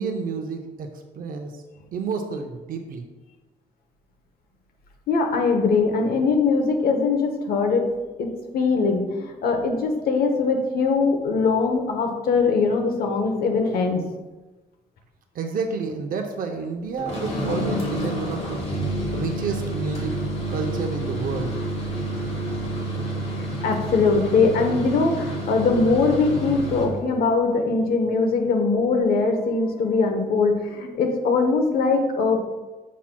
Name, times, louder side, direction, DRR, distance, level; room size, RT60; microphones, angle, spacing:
voice 1, 0.0-1.5 1.9-3.1 15.3-18.7 19.1-20.2 20.5-21.6, right 5 dB, 70° right, 4 dB, 0.6 m, -30 dB
voice 2, 5.1-7.9 8.2-8.3 8.5-14.0 23.6-32.4, left 4 dB, 80° left, 4 dB, 0.9 m, -21 dB
sound 1, 17.0-27.0, right 1 dB, 40° left, 1.5 m, -29 dB
7.2 x 5.8 x 2.2 m, 1.2 s
cardioid pair, 145°, 15 cm